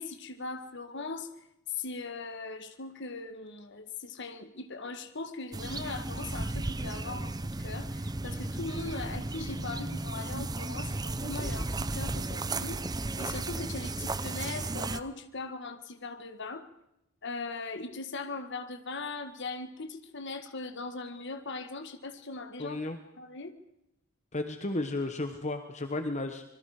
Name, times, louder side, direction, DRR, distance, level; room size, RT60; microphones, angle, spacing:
voice 1, 0.0-1.3 1.7-12.9 13.2-16.7 17.2-22.8 23.2-23.5, left 3 dB, 55° left, 8 dB, 1.6 m, -40 dB
sound 1, 5.5-15.0, right 2 dB, 20° right, 0.7 m, -34 dB
voice 2, 22.6-23.0 24.3-26.4, left 2 dB, 35° left, 7 dB, 1.3 m, -33 dB
25.5 x 22.0 x 5.0 m, 0.84 s
head